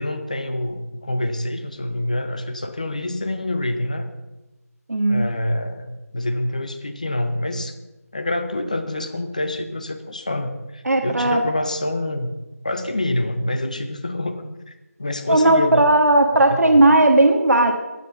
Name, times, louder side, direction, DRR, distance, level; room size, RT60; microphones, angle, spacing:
voice 1, 0.0-4.1 5.1-7.8 8.1-12.3 12.6-14.7 15.0-15.8 16.5-16.8, left 1 dB, 25° left, 8 dB, 0.8 m, -26 dB
voice 2, 4.9-5.2 10.8-11.4 15.3-17.7, right 2 dB, 70° right, 4 dB, 1.4 m, -16 dB
14.5 x 9.6 x 5.4 m, 1.0 s
figure-of-eight pair, 180°, 9 cm